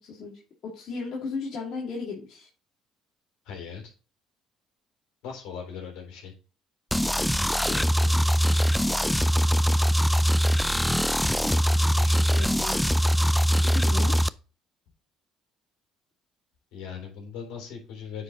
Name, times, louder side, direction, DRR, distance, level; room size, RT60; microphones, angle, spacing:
voice 1, 0.0-2.5 7.5-8.4 12.3-12.7 13.7-14.3, left 4 dB, 60° left, -3 dB, 2.4 m, -36 dB
voice 2, 3.4-3.8 5.2-6.3 11.8-12.5 16.7-18.2, left 6 dB, 80° left, 1 dB, 3.9 m, -39 dB
sound 1, 6.9-14.3, equal, 5° left, 0.4 m, -22 dB
9.6 x 4.8 x 3.8 m, 0.37 s
supercardioid pair, 75°, 0 cm